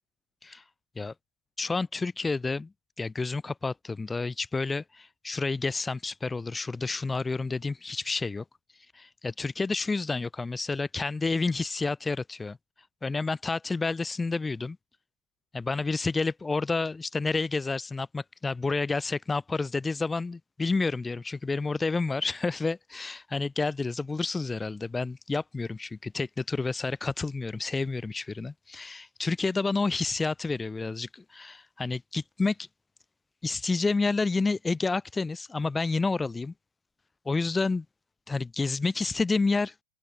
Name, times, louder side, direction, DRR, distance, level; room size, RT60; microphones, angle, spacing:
voice 1, 1.6-2.7 3.0-8.4 8.9-12.6 13.0-14.8 15.5-32.7 33.4-36.5 37.3-37.9 38.3-39.7, left 3 dB, 10° left, 0.3 m, -29 dB
figure-of-eight pair, 90°, 0 cm